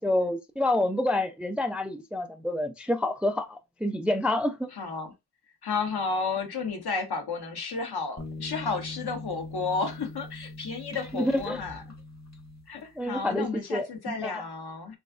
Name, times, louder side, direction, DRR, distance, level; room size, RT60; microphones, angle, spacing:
voice 1, 0.0-4.7 11.1-11.6 13.0-14.4, left 1 dB, 5° right, 0.3 m, -28 dB
voice 2, 4.8-5.1 5.6-11.8 12.7-15.0, left 4 dB, 70° left, 1.2 m, -32 dB
sound 1, 8.2-13.1, left 2 dB, 40° left, 1.3 m, -42 dB
3.5 x 3.1 x 2.4 m
cardioid pair, 70°, 40 cm